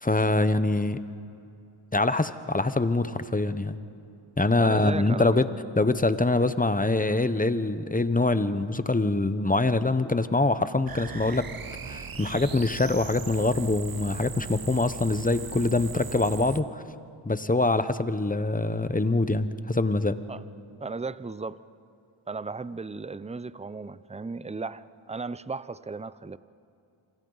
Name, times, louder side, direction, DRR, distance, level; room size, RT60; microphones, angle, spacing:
voice 1, 0.0-1.0 1.9-3.8 4.4-5.5 5.8-11.5 11.8-16.8 17.2-20.2, left 2 dB, 15° left, 12 dB, 0.9 m, -24 dB
voice 2, 4.6-5.3 20.3-20.4 20.8-21.6 22.3-26.4, right 4 dB, 15° right, 16 dB, 0.5 m, -35 dB
sound 1, 10.9-16.6, right 6 dB, 45° right, 1.0 m, -39 dB
28.0 x 26.0 x 4.0 m, 2.6 s
cardioid pair, 50°, 49 cm